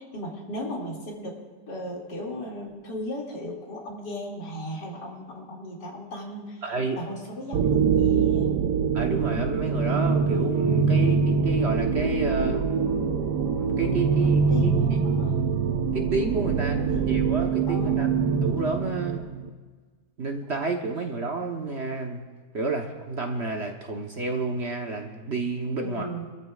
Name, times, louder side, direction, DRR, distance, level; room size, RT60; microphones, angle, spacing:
voice 1, 0.0-1.4 1.7-6.7 6.9-8.6 12.4-12.5 14.5-15.4 16.9-17.2 17.7-18.2 25.8-26.3, equal, 80° left, -2 dB, 3.1 m, -36 dB
voice 2, 6.6-7.0 8.9-12.6 13.6-15.0 15.9-19.2 20.2-22.2 22.5-26.1, right 3 dB, 45° right, 2 dB, 1.1 m, -30 dB
sound 1, 7.5-19.5, right 5 dB, 75° right, 1.4 m, -24 dB
27.0 x 13.5 x 2.4 m, 1.4 s
omnidirectional pair, 1.8 m